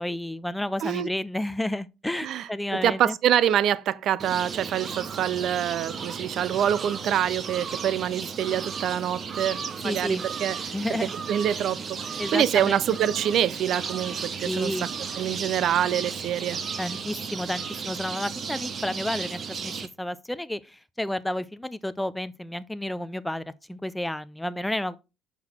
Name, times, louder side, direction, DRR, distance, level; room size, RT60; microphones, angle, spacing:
voice 1, 0.0-3.2 9.8-10.2 10.7-11.1 12.2-13.0 14.5-14.9 16.8-19.7 20.0-25.0, left 1 dB, 5° left, 0.4 m, -31 dB
voice 2, 2.2-9.6 9.8-10.7 11.3-12.0 12.3-14.7 15.2-16.6, right 10 dB, 60° right, 0.5 m, -25 dB
sound 1, 4.2-19.9, right 6 dB, 40° right, 0.8 m, -34 dB
6.0 x 5.8 x 4.3 m
cardioid pair, 125°, 0 cm